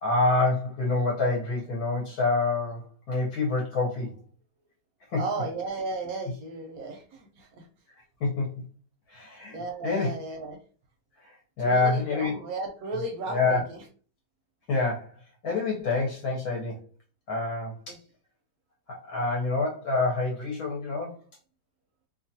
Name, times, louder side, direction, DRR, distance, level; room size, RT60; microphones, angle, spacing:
voice 1, 0.0-4.1 5.1-5.2 8.2-8.5 9.1-10.1 11.2-12.3 13.3-13.6 14.7-15.1 15.4-16.8 17.3-18.0 18.9-21.2, left 3 dB, 65° left, -3 dB, 1.2 m, -27 dB
voice 2, 5.2-7.7 9.5-10.6 11.6-13.8 17.9-18.0, right 3 dB, 70° right, 3 dB, 0.9 m, -34 dB
2.8 x 2.4 x 2.6 m, 0.39 s
omnidirectional pair, 1.9 m